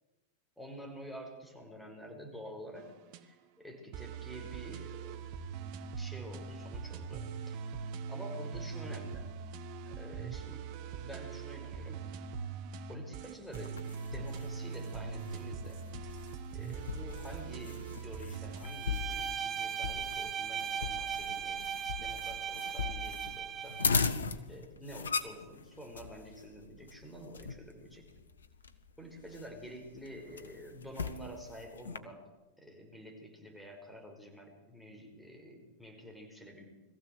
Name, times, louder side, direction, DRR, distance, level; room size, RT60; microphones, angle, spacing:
voice 1, 0.6-2.9 3.2-5.2 6.0-7.7 8.1-9.3 9.8-12.1 12.9-15.8 16.5-23.9 24.5-28.1 29.0-32.3 32.6-36.7, equal, ahead, 2 dB, 5.3 m, -48 dB
sound 1, 2.8-3.2 3.9-18.7, right 6 dB, 45° right, 1.5 m, -42 dB
sound 2, 13.5-32.0, left 5 dB, 70° left, 1.4 m, -39 dB
Bowed string instrument, 18.6-24.0, right 8 dB, 25° right, 1.2 m, -38 dB
22.0 x 15.0 x 8.0 m, 1.1 s
figure-of-eight pair, 90°, 0 cm